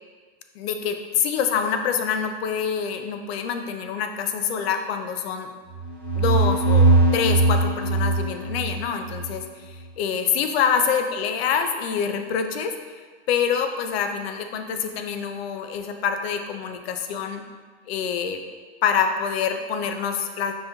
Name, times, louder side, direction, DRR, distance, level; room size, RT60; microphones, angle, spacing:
voice 1, 0.6-5.5 6.1-12.8 13.3-17.4 17.9-18.4 18.8-20.5, left 7 dB, 65° left, 7 dB, 0.5 m, -26 dB
sound 1, 5.7-9.4, right 3 dB, 5° left, 1.0 m, -20 dB
5.3 x 2.7 x 2.2 m, 1.5 s
hypercardioid pair, 130°, 33 cm